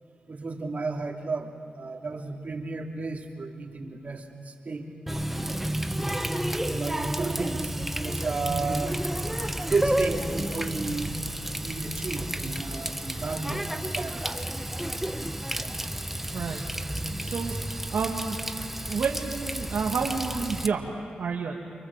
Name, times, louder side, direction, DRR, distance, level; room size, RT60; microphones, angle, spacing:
voice 1, 0.3-5.5 6.7-8.9 9.6-11.2 11.5-14.2 15.6-16.4 17.1-17.3 18.8-18.9, right 3 dB, 55° right, 2 dB, 3.0 m, -33 dB
Water tap faucet, 5.1-20.7, right 1 dB, 5° right, 1.2 m, -31 dB
voice 2, 16.3-16.6 17.2-17.5 17.9-18.4 18.9-21.6, right 5 dB, 80° right, -1 dB, 2.0 m, -30 dB
29.0 x 24.5 x 7.4 m, 2.1 s
cardioid pair, 60°, 3 cm